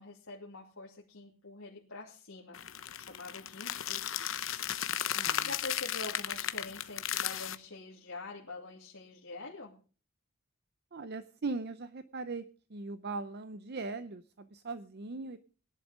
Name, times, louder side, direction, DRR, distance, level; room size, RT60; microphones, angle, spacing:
voice 1, 0.0-2.6 3.0-4.3 5.4-9.8, left 2 dB, 90° left, -5 dB, 2.7 m, -45 dB
sound 1, 2.5-7.5, left 10 dB, 70° left, 0.9 m, -35 dB
voice 2, 5.1-5.5 10.9-15.4, right 3 dB, 50° right, 12 dB, 0.7 m, -40 dB
18.0 x 11.0 x 5.0 m, 0.39 s
head